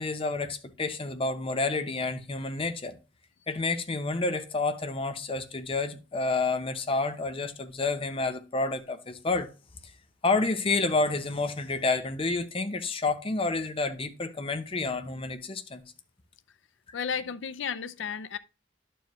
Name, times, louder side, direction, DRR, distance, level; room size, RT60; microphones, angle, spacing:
voice 1, 0.0-3.0 3.5-9.5 10.2-15.8, left 3 dB, 30° left, 0.7 m, -29 dB
voice 2, 16.9-18.4, left 7 dB, 90° left, 0.5 m, -33 dB
11.0 x 4.6 x 3.0 m
head